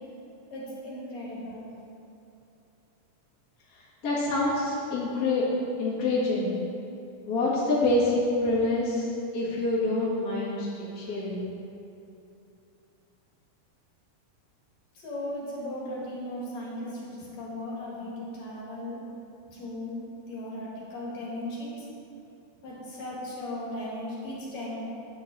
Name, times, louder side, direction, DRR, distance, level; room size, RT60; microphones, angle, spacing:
voice 1, 0.5-1.7 14.9-19.0 19.5-21.9 22.6-24.8, left 1 dB, 60° left, -6 dB, 2.9 m, -37 dB
voice 2, 4.0-5.5 5.8-6.5 7.3-10.7 11.0-11.4, left 2 dB, 35° left, -8 dB, 1.9 m, -26 dB
9.1 x 7.8 x 4.1 m, 2.8 s
omnidirectional pair, 3.6 m